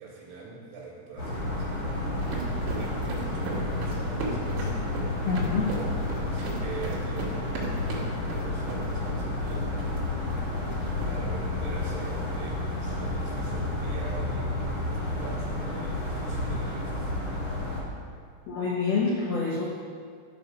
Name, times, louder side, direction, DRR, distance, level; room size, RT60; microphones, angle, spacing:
voice 1, 0.0-2.1 2.8-4.8 6.2-9.7 11.1-17.3, right 4 dB, 70° right, -5 dB, 4.1 m, -44 dB
car volkswagen van driving, 1.2-17.8, left 2 dB, 60° left, 1.3 m, -31 dB
sound 1, 2.0-11.1, right 3 dB, 85° right, 4.1 m, -38 dB
voice 2, 5.3-5.7 18.5-19.6, left 4 dB, 85° left, -3 dB, 1.8 m, -27 dB
13.0 x 5.0 x 6.4 m, 2.1 s
omnidirectional pair, 5.3 m